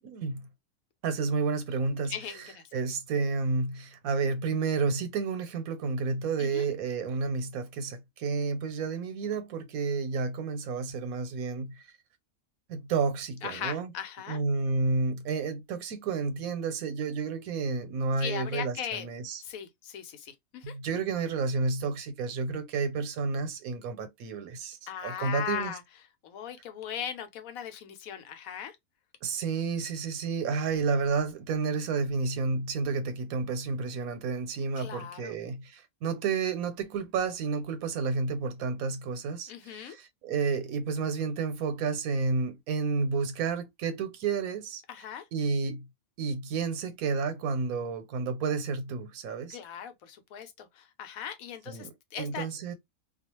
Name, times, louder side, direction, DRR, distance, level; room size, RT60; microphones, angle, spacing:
voice 1, 0.1-0.5 1.0-2.1 2.7-11.7 12.7-13.9 14.3-19.4 20.6-25.7 29.2-44.8 45.3-45.8 46.2-49.6 51.7-52.7, right 4 dB, 85° right, 1.1 m, -31 dB
voice 2, 2.1-2.7 6.4-6.6 13.4-14.4 18.2-19.1 19.4-20.7 24.9-25.8 26.2-28.8 34.8-35.3 39.5-40.0 44.9-45.3 49.5-52.5, left 8 dB, 85° left, 1.1 m, -38 dB
2.4 x 2.3 x 2.9 m
omnidirectional pair, 1.5 m